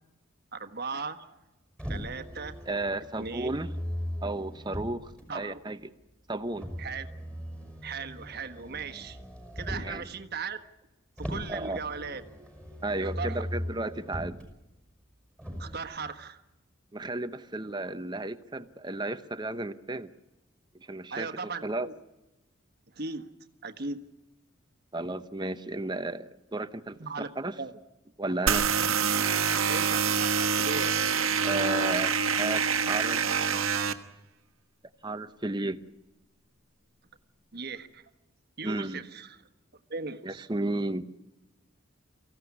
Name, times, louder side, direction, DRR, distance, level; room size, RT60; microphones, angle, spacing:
voice 1, 0.5-1.4 1.9-2.6 3.2-3.5 5.3-5.7 6.8-7.1 7.8-9.2 9.5-10.6 11.2-12.2 13.0-13.4 15.6-16.4 21.1-21.9 22.9-23.3 23.6-24.0 27.0-27.3 27.6-27.7 29.7-31.0 37.5-38.0 38.6-39.4 39.9-40.5, right 4 dB, 50° right, 7 dB, 1.4 m, -37 dB
Motor vehicle (road), 1.8-5.2 6.5-10.0 11.2-14.4 15.4-15.8, equal, 5° left, 5.9 m, -38 dB
voice 2, 2.7-3.7 4.2-5.9 6.3-6.7 9.8-10.1 11.5-11.8 12.8-14.4 16.9-20.1 20.7-21.3 21.6-21.9 24.9-27.6 28.2-28.9 31.4-33.3 35.0-35.8 38.6-39.0 40.2-41.1, right 2 dB, 20° right, 11 dB, 0.8 m, -33 dB
sound 1, 28.5-33.9, right 6 dB, 90° right, 1.4 m, -26 dB
24.5 x 15.5 x 9.7 m, 1.0 s
head